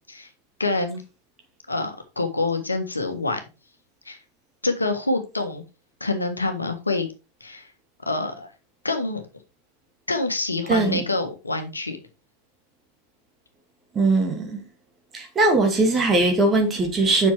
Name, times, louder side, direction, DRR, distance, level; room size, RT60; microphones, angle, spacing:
voice 1, 0.6-1.0 1.7-3.4 4.0-4.2 4.6-5.6 6.0-7.1 7.4-7.7 8.1-8.5 8.8-9.2 10.1-12.0, left 2 dB, 80° left, 1.5 m, -26 dB
voice 2, 10.7-11.0 13.9-14.6 15.1-17.3, right 2 dB, 20° right, 2.3 m, -20 dB
7.5 x 6.1 x 4.4 m
figure-of-eight pair, 90°, 0 cm